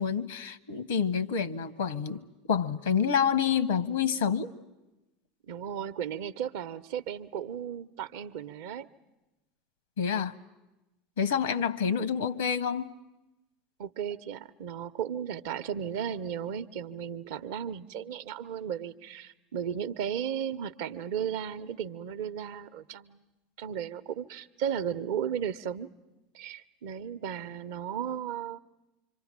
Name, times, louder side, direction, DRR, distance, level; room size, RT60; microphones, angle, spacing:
voice 1, 0.0-2.2 2.5-4.5 10.0-10.4 11.2-12.9, left 7 dB, 80° left, 17 dB, 0.9 m, -28 dB
voice 2, 5.5-8.9 13.8-23.2 23.6-25.9 26.3-28.6, right 9 dB, 65° right, 11 dB, 0.8 m, -35 dB
26.0 x 25.0 x 7.4 m, 1.0 s
figure-of-eight pair, 75°, 0 cm